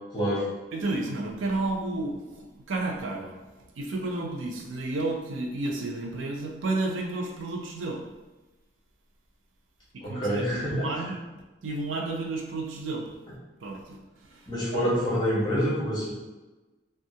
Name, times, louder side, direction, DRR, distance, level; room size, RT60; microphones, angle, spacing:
voice 1, 0.1-0.5 10.0-10.9 14.5-16.1, equal, 20° left, -7 dB, 0.9 m, -27 dB
voice 2, 0.7-3.4 3.7-8.0 9.9-11.2 11.6-13.1 13.6-14.9, right 2 dB, 90° right, 1 dB, 0.5 m, -32 dB
3.5 x 2.3 x 2.7 m, 1.1 s
head